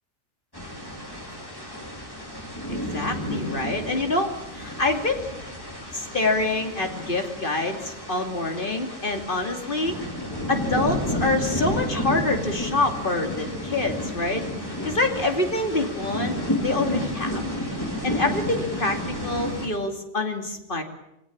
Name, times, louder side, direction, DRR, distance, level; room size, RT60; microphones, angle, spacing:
sound 1, 0.5-19.7, left 1 dB, 15° left, 4.9 m, -31 dB
voice 1, 2.7-5.2 5.9-10.0 10.5-14.4 14.8-16.3 16.6-17.4 18.0-20.8, left 2 dB, 40° left, 4 dB, 2.8 m, -26 dB
24.5 x 17.0 x 8.8 m, 0.86 s
omnidirectional pair, 1.3 m